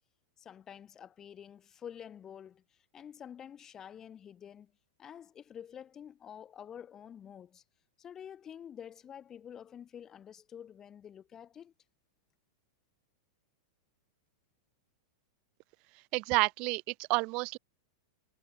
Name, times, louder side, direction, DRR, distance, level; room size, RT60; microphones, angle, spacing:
voice 1, 0.4-2.6 2.9-4.7 5.0-7.6 8.0-11.7, left 9 dB, 25° left, 6.5 m, -48 dB
voice 2, 16.1-17.6, right 27 dB, 45° right, 4.7 m, -30 dB
supercardioid pair, 135°, 2 cm